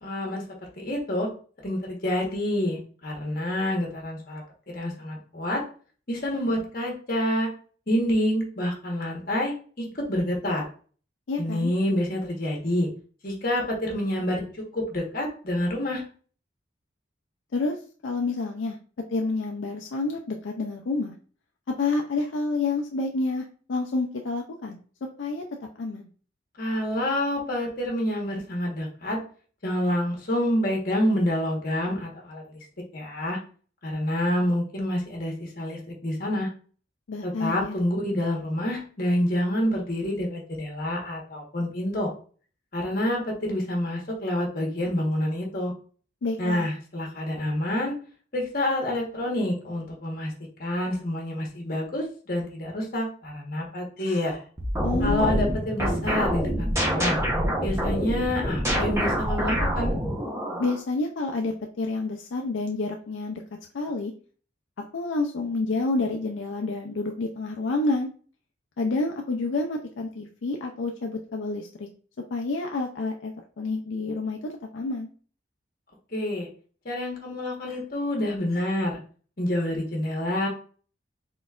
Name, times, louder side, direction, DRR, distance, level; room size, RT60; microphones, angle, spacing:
voice 1, 0.0-0.4 0.8-1.3 1.6-4.4 4.7-5.6 6.1-7.5 7.9-10.6 11.4-12.9 13.2-16.0 26.6-29.2 29.6-32.4 32.9-33.4 33.8-36.5 37.2-42.1 42.7-45.7 46.4-47.9 48.3-50.3 50.6-54.4 55.0-57.2 57.6-59.9 76.1-76.5 76.8-79.0 79.4-80.5, left 1 dB, 50° left, -1 dB, 1.2 m, -27 dB
voice 2, 11.3-11.7 17.5-17.8 18.0-18.8 19.1-21.1 21.7-24.8 25.2-25.4 25.8-26.1 37.1-37.8 46.2-46.7 54.8-55.4 60.6-63.4 63.7-64.1 64.9-68.1 68.8-71.9 72.3-75.1, left 3 dB, 75° left, 2 dB, 0.5 m, -29 dB
sound 1, 54.6-60.8, equal, 15° right, 0.8 m, -26 dB
4.1 x 3.9 x 2.4 m, 0.42 s
head